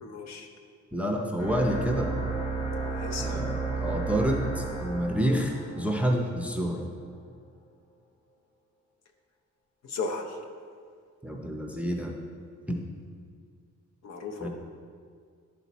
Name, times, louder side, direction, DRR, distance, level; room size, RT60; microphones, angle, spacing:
voice 1, 0.0-0.5 2.9-3.4 9.8-10.4 14.0-14.5, left 4 dB, 60° left, 3 dB, 0.8 m, -35 dB
voice 2, 0.9-2.1 3.2-6.9 11.2-12.1 12.7-12.8 14.4-14.5, equal, 5° right, 1 dB, 0.5 m, -28 dB
sound 1, 1.4-6.6, right 4 dB, 20° left, 1.5 m, -33 dB
10.5 x 4.5 x 4.0 m, 2.1 s
wide cardioid pair, 160°, 30 cm